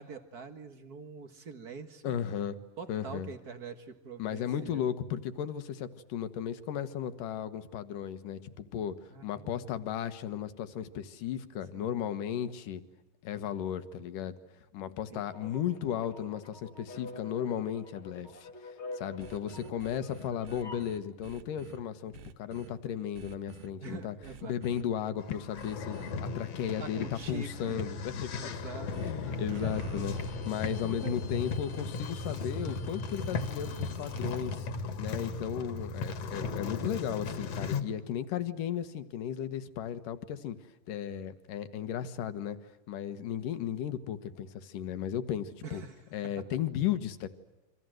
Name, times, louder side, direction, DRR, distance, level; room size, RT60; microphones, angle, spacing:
voice 1, 0.0-2.2 2.8-4.9 9.1-9.7 11.7-11.9 15.1-15.6 23.8-24.5 26.6-27.8 28.4-28.9 29.6-30.1 30.8-31.2 36.3-36.6 45.6-46.0 46.4-46.5, right 5 dB, 40° right, 9 dB, 1.3 m, -45 dB
voice 2, 2.0-2.6 2.9-3.3 4.2-9.0 9.2-12.8 13.2-14.4 14.7-18.5 18.9-24.2 24.4-28.6 29.0-30.2 30.5-34.7 35.0-40.6 40.9-42.6 42.9-45.8 46.1-47.3, left 9 dB, 70° left, 12 dB, 2.9 m, -35 dB
sound 1, 15.3-20.9, left 2 dB, 30° left, 1.4 m, -46 dB
sound 2, 19.2-21.8 22.1-22.7 23.1-23.7 24.2-24.8 25.5-26.1 27.2-27.7 28.9-34.7, right 8 dB, 75° right, 2.9 m, -51 dB
sound 3, 25.2-37.8, left 4 dB, 50° left, 2.7 m, -36 dB
28.5 x 25.5 x 7.8 m, 1.0 s
omnidirectional pair, 4.0 m